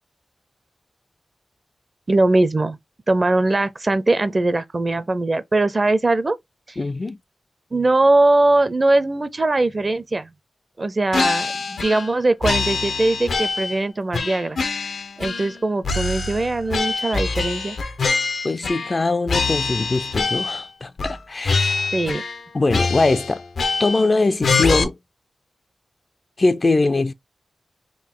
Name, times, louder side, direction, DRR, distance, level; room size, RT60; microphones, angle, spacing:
voice 1, 2.1-2.8 3.1-6.4 7.7-10.3 10.8-14.6 15.2-17.8 21.9-22.2, right 2 dB, 35° right, 0.5 m, -20 dB
voice 2, 6.8-7.2 18.4-21.9 22.5-23.4 23.8-25.0 26.4-27.1, left 3 dB, 40° left, 0.3 m, -21 dB
sound 1, 11.1-12.1 12.4-13.8 14.1-15.6 15.8-19.0 19.3-20.6 21.0-21.2 21.4-22.4 22.7-24.1 24.4-24.8, left 4 dB, 80° left, 0.6 m, -24 dB
3.8 x 2.3 x 3.7 m
wide cardioid pair, 75°, 0 cm